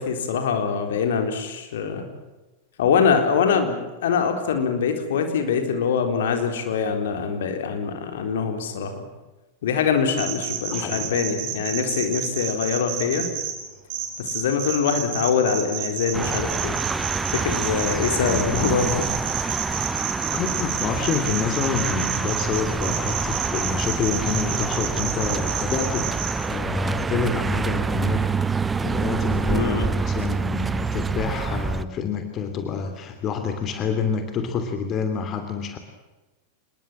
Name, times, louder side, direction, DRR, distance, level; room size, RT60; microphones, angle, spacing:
voice 1, 0.0-2.1 2.8-9.0 9.6-13.3 14.2-16.8 17.3-19.0 19.5-19.6 29.5-29.9, left 6 dB, 60° left, 6 dB, 4.1 m, -24 dB
sound 1, 10.2-13.5 13.9-26.3, right 10 dB, 40° right, 7.4 m, -29 dB
voice 2, 10.7-11.1 18.2-18.7 20.3-26.1 26.5-28.3 28.8-35.8, left 5 dB, 30° left, 7 dB, 3.0 m, -28 dB
sound 2, 16.1-31.8, right 4 dB, 15° right, 1.0 m, -27 dB
26.5 x 21.5 x 7.5 m, 1.1 s
figure-of-eight pair, 90°, 0 cm